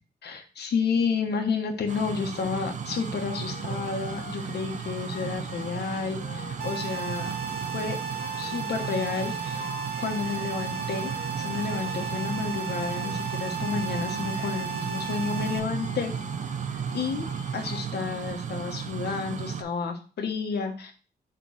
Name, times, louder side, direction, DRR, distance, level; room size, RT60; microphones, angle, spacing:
voice 1, 0.2-7.3 7.7-8.0 8.4-9.7 10.0-16.1 16.9-17.3 17.5-20.9, left 5 dB, 85° left, 4 dB, 1.2 m, -31 dB
sound 1, 1.9-19.6, right 7 dB, 50° right, 0.5 m, -35 dB
sound 2, 2.9-17.9, left 8 dB, 65° left, 0.8 m, -45 dB
sound 3, 6.6-15.6, right 6 dB, 90° right, 0.7 m, -35 dB
6.0 x 3.4 x 4.8 m, 0.37 s
wide cardioid pair, 170°, 17 cm